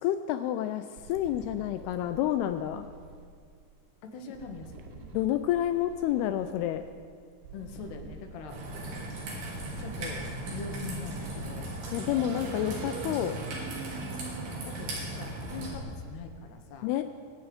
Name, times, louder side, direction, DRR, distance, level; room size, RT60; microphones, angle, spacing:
voice 1, 0.0-2.9 5.1-6.8 11.9-13.3 16.8-17.0, left 12 dB, 90° left, 9 dB, 2.3 m, -29 dB
sound 1, 1.0-3.3 4.3-6.9 7.4-16.2, right 5 dB, 90° right, 3.4 m, -45 dB
voice 2, 4.0-5.0 7.5-8.6 9.8-11.7 12.2-12.5 14.7-16.9, left 4 dB, 70° left, 4 dB, 3.1 m, -43 dB
Raindrop / Trickle dribble, 8.5-15.7, right 1 dB, 65° right, 4.8 m, -37 dB
22.5 x 9.1 x 5.2 m, 2.1 s
omnidirectional pair, 5.1 m